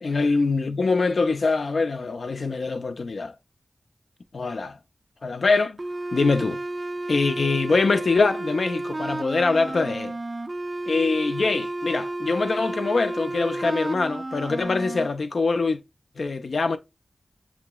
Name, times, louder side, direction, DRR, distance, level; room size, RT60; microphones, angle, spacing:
voice 1, 0.0-3.3 4.3-4.8 5.2-5.8 6.1-6.6 7.1-10.2 10.9-15.8 16.2-16.8, left 3 dB, 75° left, 0.4 m, -23 dB
sound 1, 5.8-15.1, right 2 dB, 30° right, 0.4 m, -32 dB
6.9 x 2.9 x 2.2 m
wide cardioid pair, 80°, 0 cm